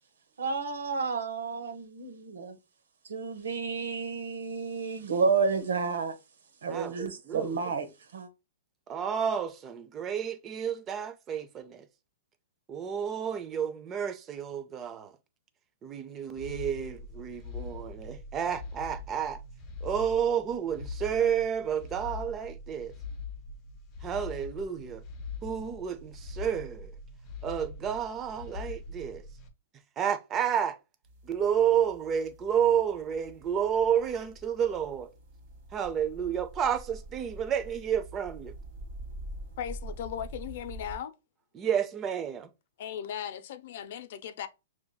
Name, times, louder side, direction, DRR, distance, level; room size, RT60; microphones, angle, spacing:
voice 1, 0.4-2.6 3.1-6.2 6.6-8.3, right 5 dB, 90° right, 0.9 m, -31 dB
voice 2, 6.7-7.5 8.9-11.8 12.7-15.1 15.8-19.4 19.8-22.9 24.0-25.0 25.4-26.9 27.4-29.2 30.0-30.8 31.3-35.1 35.7-38.5 41.5-42.5, right 8 dB, 20° right, 0.5 m, -30 dB
sound 1, 16.4-29.5, left 3 dB, 25° left, 0.8 m, -42 dB
sound 2, 31.0-41.0, right 1 dB, 50° right, 1.1 m, -46 dB
voice 3, 39.6-41.1 42.8-44.5, left 9 dB, 55° left, 0.6 m, -37 dB
6.2 x 2.8 x 2.2 m
hypercardioid pair, 155°, 0 cm